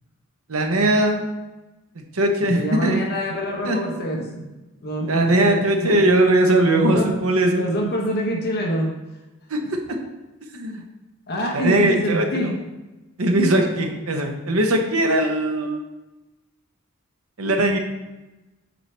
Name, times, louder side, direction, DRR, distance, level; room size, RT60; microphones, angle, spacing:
voice 1, 0.5-1.3 2.0-3.0 3.6-3.9 5.1-7.7 9.5-9.8 10.5-10.8 11.5-12.6 13.2-15.8 17.4-17.8, right 1 dB, 70° right, 4 dB, 0.9 m, -20 dB
voice 2, 2.4-4.4 4.8-6.0 6.7-7.1 7.5-8.9 11.3-12.5, equal, 50° left, 0 dB, 1.1 m, -25 dB
7.8 x 4.5 x 3.3 m, 1.1 s
head